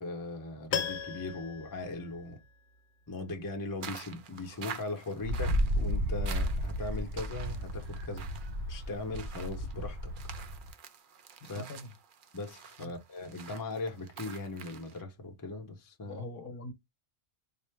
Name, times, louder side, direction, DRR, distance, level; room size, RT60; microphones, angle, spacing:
voice 1, 0.0-2.4 3.1-8.3 8.7-10.1 11.5-11.6 12.3-16.2, left 2 dB, 25° left, 0.6 m, -39 dB
Piano, 0.7-2.8 3.1-3.2, left 8 dB, 80° left, 0.9 m, -37 dB
sound 1, 3.8-15.0, right 7 dB, 60° right, 0.7 m, -48 dB
Wind, 5.2-10.7, equal, 85° right, 1.2 m, -33 dB
voice 2, 11.4-11.9 12.8-13.0 16.0-16.7, left 1 dB, 60° left, 1.0 m, -43 dB
4.3 x 2.1 x 3.3 m
omnidirectional pair, 1.1 m